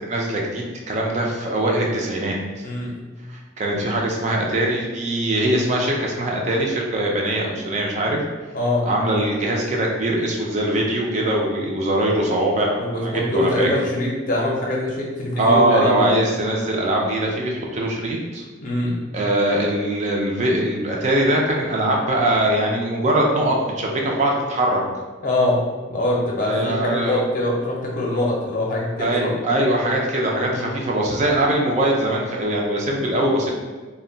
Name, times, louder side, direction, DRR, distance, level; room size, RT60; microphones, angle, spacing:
voice 1, 0.0-2.6 3.3-8.2 8.8-13.7 15.4-18.4 19.1-24.8 26.4-27.2 29.0-33.6, right 1 dB, 35° right, -1 dB, 0.3 m, -22 dB
voice 2, 2.6-3.0 8.5-8.9 12.8-16.1 18.6-19.0 25.2-25.6 25.9-29.3 30.5-30.8, left 1 dB, 40° left, -3 dB, 0.6 m, -23 dB
2.2 x 2.1 x 3.7 m, 1.3 s
head